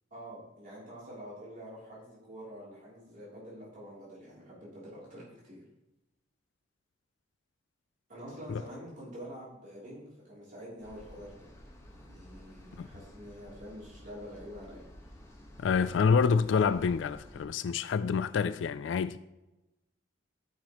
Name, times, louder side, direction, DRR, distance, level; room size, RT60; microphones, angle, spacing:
voice 1, 0.1-5.6 8.1-11.4 11.9-14.9, equal, 45° right, 3.2 m, -46 dB
sound 1, 10.8-17.5, equal, 15° left, 1.3 m, -52 dB
voice 2, 15.6-19.2, left 5 dB, 70° left, 0.3 m, -27 dB
13.0 x 5.8 x 3.0 m
head